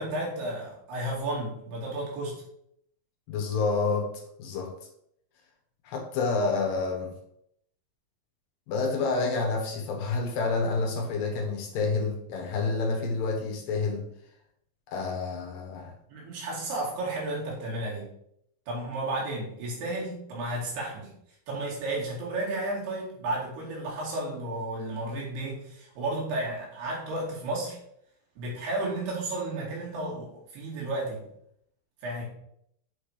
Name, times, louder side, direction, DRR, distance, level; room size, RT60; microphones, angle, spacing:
voice 1, 0.0-2.4 16.1-18.1 18.7-21.1 21.5-27.8 28.4-31.2 32.0-32.2, right 2 dB, 80° right, -4 dB, 4.6 m, -33 dB
voice 2, 3.3-4.1 4.4-4.7 5.8-7.1 8.7-14.1 14.9-15.9, left 4 dB, 70° left, 2 dB, 2.7 m, -28 dB
8.2 x 4.3 x 5.0 m, 0.73 s
omnidirectional pair, 4.6 m